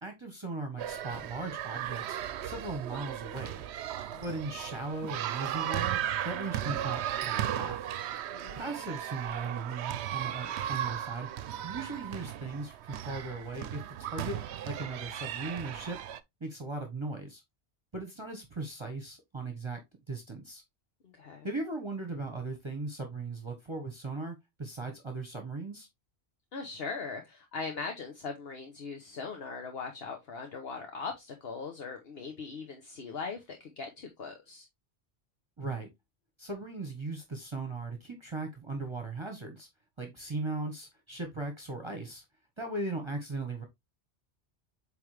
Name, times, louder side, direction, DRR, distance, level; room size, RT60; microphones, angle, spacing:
voice 1, 0.0-3.6 4.2-7.8 8.6-11.3 11.6-16.0 16.4-17.4 17.9-19.8 20.1-20.6 21.4-25.9 35.6-35.9 36.4-39.7 40.0-42.2 42.6-43.6, right 3 dB, 25° right, 1.4 m, -38 dB
sound 1, 0.8-16.2, right 11 dB, 80° right, 0.9 m, -36 dB
voice 2, 8.3-8.7 21.0-21.5 26.5-34.7, left 4 dB, 60° left, 1.2 m, -40 dB
8.2 x 3.5 x 3.3 m
omnidirectional pair, 1.1 m